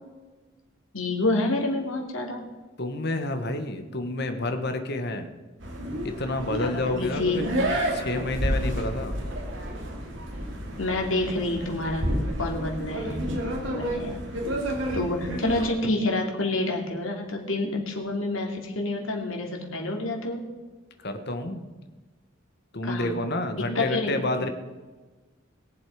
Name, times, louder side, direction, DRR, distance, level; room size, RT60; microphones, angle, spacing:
voice 1, 0.9-2.4 6.6-7.4 10.8-13.2 13.7-14.2 14.9-20.4 22.8-23.1 23.5-24.2, left 2 dB, 80° left, 1 dB, 2.8 m, -28 dB
voice 2, 2.8-5.3 6.0-7.4 7.7-9.1 21.0-21.6 22.7-24.5, left 2 dB, 55° left, 7 dB, 1.6 m, -29 dB
sound 1, 5.6-15.7, equal, 65° right, 2.8 m, -30 dB
21.0 x 7.7 x 5.1 m, 1.3 s
head